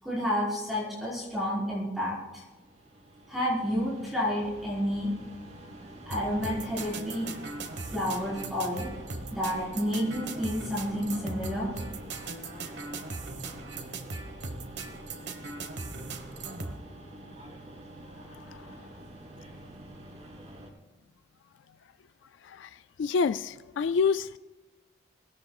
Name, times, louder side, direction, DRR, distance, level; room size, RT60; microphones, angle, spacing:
voice 1, 0.0-2.4 3.3-5.1 6.1-7.3 7.9-8.9 9.3-11.7, equal, ahead, -8 dB, 4.3 m, -30 dB
sound 1, 2.3-20.7, right 1 dB, 35° right, 3.2 m, -48 dB
sound 2, 6.1-16.8, right 3 dB, 60° right, 1.4 m, -39 dB
voice 2, 23.0-24.4, left 5 dB, 75° left, 13 dB, 0.3 m, -27 dB
23.0 x 17.5 x 2.4 m, 1.2 s
head